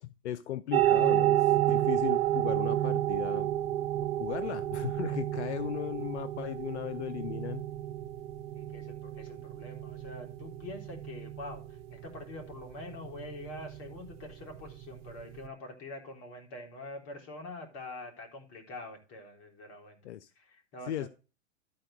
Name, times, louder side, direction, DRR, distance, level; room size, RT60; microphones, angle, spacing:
voice 1, 0.0-3.5 4.1-7.6 20.0-20.3 20.9-21.1, left 12 dB, 85° left, 14 dB, 0.6 m, -37 dB
sound 1, 0.7-15.5, right 12 dB, 65° right, 0.9 m, -31 dB
voice 2, 8.6-20.0 20.4-21.1, left 2 dB, 45° left, 3 dB, 3.7 m, -45 dB
12.0 x 4.5 x 6.1 m, 0.33 s
hypercardioid pair, 110°, 33 cm